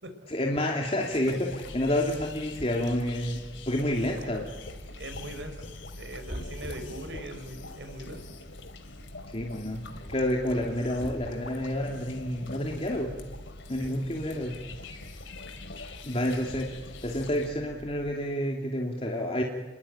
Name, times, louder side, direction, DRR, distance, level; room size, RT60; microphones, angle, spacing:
voice 1, 0.3-3.4 3.7-4.4 9.3-9.8 10.1-13.1 13.7-14.6 16.0-16.7 17.0-19.4, left 1 dB, 30° left, 0 dB, 2.8 m, -29 dB
sound 1, 1.0-17.5, left 3 dB, 90° left, 2.7 m, -45 dB
sound 2, 1.6-18.1, equal, 40° right, 2.5 m, -46 dB
voice 2, 4.9-8.2 13.7-14.0, right 1 dB, 70° right, 8 dB, 4.5 m, -42 dB
27.5 x 21.5 x 9.0 m, 1.2 s
head